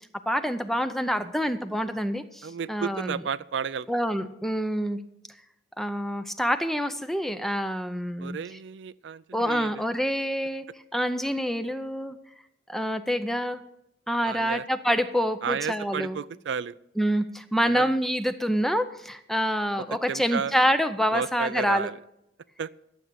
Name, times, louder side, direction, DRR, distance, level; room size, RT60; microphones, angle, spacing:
voice 1, 0.3-3.2 3.9-5.0 5.8-8.4 9.3-10.7 10.9-12.2 12.7-13.6 14.1-16.2 17.0-21.9, equal, ahead, 10 dB, 0.6 m, -27 dB
voice 2, 2.4-3.9 8.2-9.8 14.2-14.6 15.4-16.7 17.6-17.9 20.1-20.6 21.1-22.0 22.6-22.7, right 6 dB, 80° right, 16 dB, 0.4 m, -32 dB
12.0 x 7.5 x 6.9 m, 0.80 s
head